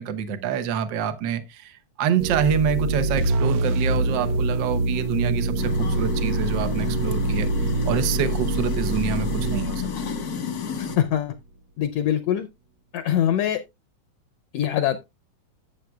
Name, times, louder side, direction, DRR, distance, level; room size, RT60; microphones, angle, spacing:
voice 1, 0.0-9.8, right 8 dB, 85° right, 1.0 m, -27 dB
sound 1, 2.2-10.9, right 2 dB, 70° right, 1.8 m, -25 dB
sound 2, 5.6-11.0, left 6 dB, 55° left, 1.0 m, -32 dB
voice 2, 10.8-11.3 11.8-12.5 12.9-13.6 14.5-15.0, left 10 dB, 75° left, 1.5 m, -23 dB
14.0 x 7.4 x 2.3 m
omnidirectional pair, 3.5 m